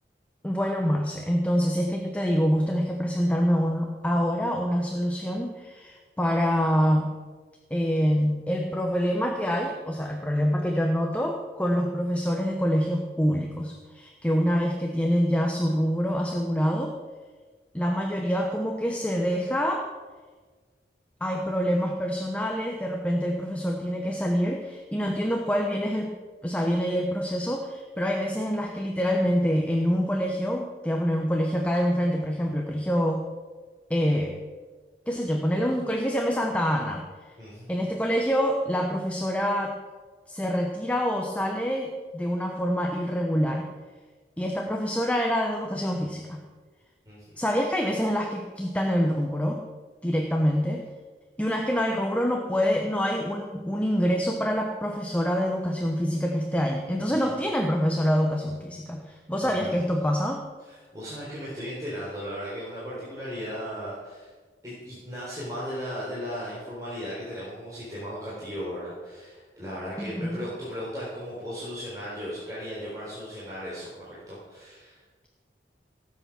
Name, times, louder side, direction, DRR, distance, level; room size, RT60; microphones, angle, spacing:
voice 1, 0.4-7.1 7.7-16.9 17.7-19.8 21.2-26.1 26.4-33.2 33.9-34.3 35.1-37.3 37.7-39.8 40.3-43.7 44.4-46.4 47.4-49.6 50.0-50.8 51.4-60.4 70.0-70.4, equal, 10° left, 2 dB, 1.0 m, -26 dB
voice 2, 37.4-37.7 47.1-47.4 57.1-57.3 59.1-59.9 60.6-64.3 64.6-75.0, equal, 20° right, -8 dB, 4.0 m, -36 dB
17.5 x 8.3 x 6.3 m, 1.4 s
head